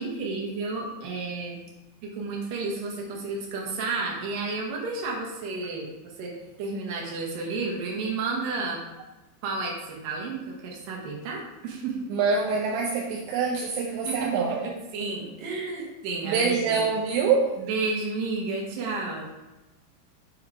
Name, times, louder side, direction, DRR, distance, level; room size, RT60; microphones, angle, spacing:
voice 1, 0.0-1.6 2.0-5.9 6.2-8.8 9.4-12.0 14.1-16.9 17.6-19.2, right 3 dB, 60° right, -2 dB, 2.6 m, -32 dB
voice 2, 12.1-14.7 16.2-17.6, right 5 dB, 80° right, -1 dB, 2.9 m, -25 dB
7.4 x 4.5 x 4.9 m, 1.1 s
omnidirectional pair, 5.4 m